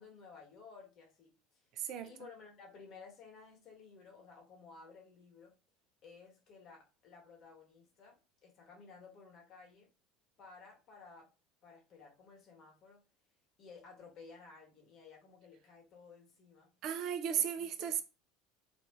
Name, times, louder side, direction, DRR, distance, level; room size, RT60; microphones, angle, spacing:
voice 1, 0.0-1.7 2.0-5.6 6.0-9.9 10.4-11.3 11.6-13.0 13.6-16.8 17.3-17.9, left 4 dB, 50° left, 1.1 m, -56 dB
voice 2, 1.7-2.1 16.8-18.0, right 9 dB, 55° right, 0.4 m, -35 dB
2.6 x 2.4 x 2.3 m
hypercardioid pair, 75°, 0 cm